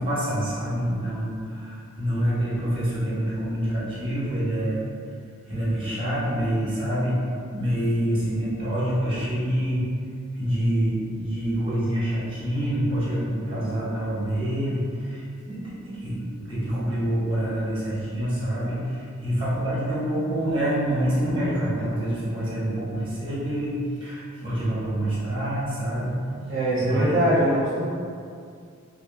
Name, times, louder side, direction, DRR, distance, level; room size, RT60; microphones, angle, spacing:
voice 1, 0.0-4.8 5.4-7.2 7.5-9.8 10.3-26.1 26.8-27.1, right 1 dB, 25° right, -9 dB, 1.0 m, -26 dB
voice 2, 26.5-27.8, right 1 dB, 60° right, -9 dB, 0.6 m, -22 dB
2.7 x 2.6 x 2.4 m, 2.3 s
head